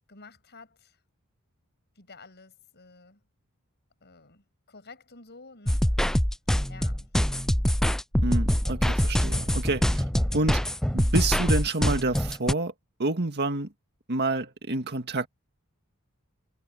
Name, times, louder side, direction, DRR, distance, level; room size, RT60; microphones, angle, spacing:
voice 1, 0.1-1.0 1.9-3.2 4.0-6.2 6.7-7.1, left 3 dB, 50° left, 6.4 m, -51 dB
sound 1, 5.7-12.5, equal, ahead, 0.3 m, -24 dB
voice 2, 8.2-10.0 10.3-10.6 10.9-12.7 13.0-13.7 14.1-15.3, right 2 dB, 50° right, 2.0 m, -28 dB
head